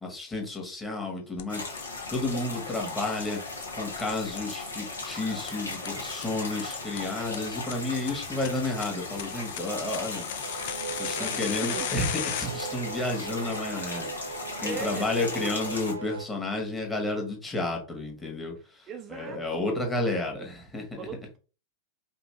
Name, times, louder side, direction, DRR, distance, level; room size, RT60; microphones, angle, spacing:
voice 1, 0.0-3.4 3.7-10.3 10.9-21.0, left 2 dB, 10° left, 0 dB, 1.5 m, -32 dB
sound 1, 1.4-1.5 1.8-1.9 2.1-2.2 2.5-2.6 2.9-3.0 3.3-3.4 3.6-3.7 4.0-4.1 4.4-4.5 4.7-4.8 5.1-5.2 5.5-5.6 5.8-5.9 6.2-6.3 6.6-6.7 7.0-7.1 7.3-7.4 7.7-7.8 8.1-12.5, left 11 dB, 50° left, 0.5 m, -35 dB
sound 2, 1.5-15.9, left 3 dB, 75° left, 1.4 m, -37 dB
sound 3, 10.4-16.3, right 6 dB, 75° right, 0.4 m, -39 dB
voice 2, 11.2-11.9 14.6-15.6 18.9-20.1 21.0-21.4, right 5 dB, 30° right, 5 dB, 0.5 m, -39 dB
5.1 x 2.9 x 3.2 m, 0.35 s
figure-of-eight pair, 90°, 0 cm